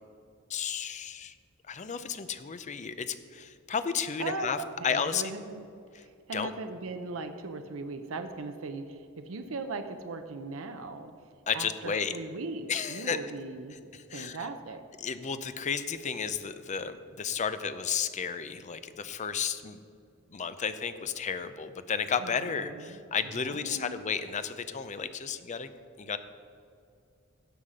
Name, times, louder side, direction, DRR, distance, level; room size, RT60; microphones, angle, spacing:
voice 1, 0.5-1.3 1.7-4.6 4.8-5.2 6.3-6.5 11.5-12.1 12.7-13.2 13.9-14.4 15.0-19.8 20.3-25.7 26.0-26.2, left 6 dB, 35° left, 11 dB, 0.5 m, -33 dB
voice 2, 4.2-5.6 6.0-11.1 11.5-13.8 14.1-14.8 22.2-23.0 23.3-24.0, right 3 dB, 70° right, 7 dB, 0.6 m, -39 dB
16.0 x 5.7 x 5.0 m, 2.4 s
head